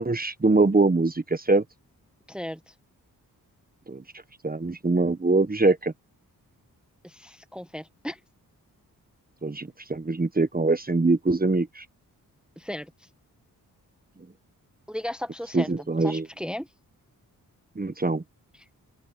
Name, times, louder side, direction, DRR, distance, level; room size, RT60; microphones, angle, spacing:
voice 1, 0.0-1.6 3.9-4.0 4.4-5.9 9.4-11.8 15.5-16.3 17.7-18.2, right 3 dB, 25° right, 1.3 m, -23 dB
voice 2, 2.3-2.6 7.0-8.2 12.6-12.9 14.9-15.7 16.0-16.7, equal, ahead, 1.2 m, -35 dB
open air
cardioid pair, 55°, 37 cm